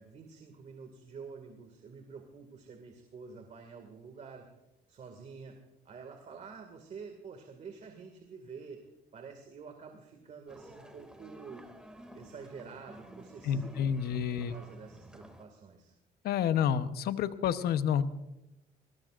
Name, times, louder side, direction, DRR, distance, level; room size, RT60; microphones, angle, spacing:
voice 1, 0.0-4.5 4.9-5.6 5.8-11.7 12.1-13.9 14.3-15.9, right 5 dB, 45° right, 4 dB, 2.1 m, -48 dB
sound 1, 10.5-15.4, equal, 5° right, 2.3 m, -52 dB
voice 2, 13.4-14.5 16.2-18.0, left 8 dB, 70° left, 11 dB, 0.9 m, -29 dB
20.0 x 19.5 x 2.5 m, 0.94 s
cardioid pair, 110°, 17 cm